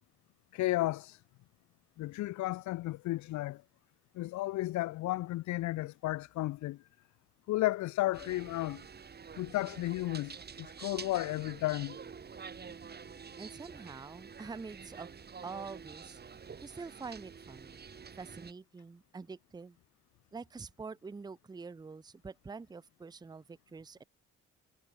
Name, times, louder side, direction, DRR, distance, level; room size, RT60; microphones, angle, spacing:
voice 1, 0.5-1.2 2.0-3.6 4.1-6.8 7.5-8.8 9.4-12.0, left 17 dB, 75° left, 0.5 m, -33 dB
sound 1, 8.1-18.5, right 6 dB, 35° right, 1.0 m, -48 dB
voice 2, 13.4-15.1 15.4-16.2 16.6-17.8 18.2-19.8 20.3-24.0, right 4 dB, 15° right, 0.5 m, -46 dB
supercardioid pair, 60°, 29 cm